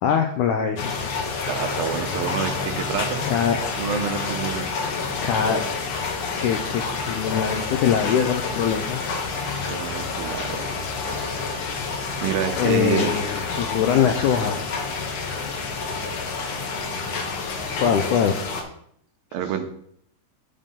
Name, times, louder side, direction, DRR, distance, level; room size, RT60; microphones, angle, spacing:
voice 1, 0.0-1.1 3.2-3.6 5.2-5.6 6.4-9.1 12.6-14.7 15.5-15.6 17.8-18.4, left 8 dB, 85° left, 5 dB, 1.8 m, -23 dB
sound 1, 0.8-18.6, left 4 dB, 65° left, 1.6 m, -29 dB
voice 2, 1.5-3.2 3.8-4.8 9.7-10.6 12.2-13.1 19.3-19.6, right 8 dB, 80° right, 6 dB, 2.6 m, -27 dB
10.5 x 3.6 x 5.6 m, 0.68 s
omnidirectional pair, 4.2 m